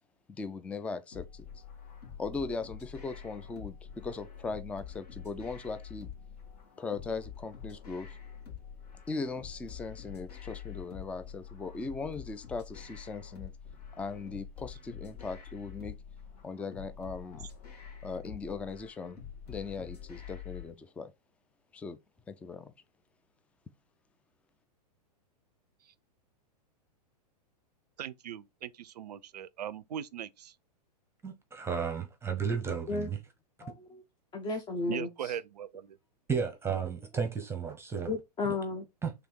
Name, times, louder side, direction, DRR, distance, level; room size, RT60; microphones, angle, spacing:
voice 1, 0.3-1.5 2.2-6.1 6.8-8.2 9.1-13.5 14.0-16.0 16.4-17.5 18.0-19.2 19.5-21.1 21.7-22.0 22.3-22.7, left 4 dB, 5° left, 0.4 m, -39 dB
sound 1, 1.1-20.7, left 8 dB, 65° left, 2.0 m, -46 dB
voice 2, 28.0-30.5 34.9-35.7, right 10 dB, 70° right, 0.5 m, -39 dB
voice 3, 31.2-33.2 36.3-38.1 38.4-38.6 39.0-39.1, right 6 dB, 10° right, 0.9 m, -33 dB
voice 4, 33.6-34.0 34.3-35.3 38.1-38.8, left 3 dB, 20° left, 0.8 m, -34 dB
3.5 x 3.4 x 4.5 m
hypercardioid pair, 105°, 21 cm